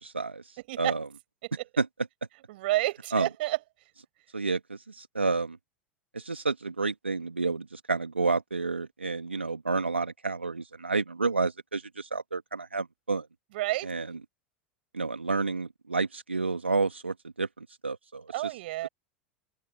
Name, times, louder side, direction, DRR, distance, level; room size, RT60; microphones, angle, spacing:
voice 1, 0.0-0.4 0.8-1.1 1.8-1.9 3.1-3.3 4.3-5.6 6.1-13.3 13.8-14.2 14.9-18.5 18.8-18.9, right 3 dB, 90° right, 2.3 m, -30 dB
voice 2, 2.5-3.6 13.5-13.9 18.3-18.9, right 17 dB, 65° right, 7.4 m, -29 dB
open air
figure-of-eight pair, 85°, 6 cm